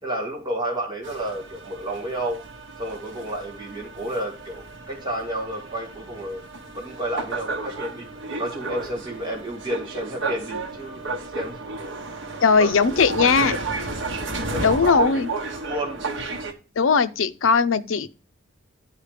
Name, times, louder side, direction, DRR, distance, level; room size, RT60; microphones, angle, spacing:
voice 1, 0.0-2.4 2.8-6.4 6.7-8.1 8.4-11.1 11.3-11.6 12.2-12.3 12.6-13.0 13.5-13.6 14.5-15.1 15.6-16.1, right 1 dB, 20° right, 1.9 m, -31 dB
sound 1, 1.0-16.5, right 3 dB, 70° right, 1.2 m, -33 dB
voice 2, 12.4-13.5 14.6-15.3 16.8-18.1, left 5 dB, 80° left, 0.6 m, -19 dB
10.5 x 4.8 x 4.9 m
head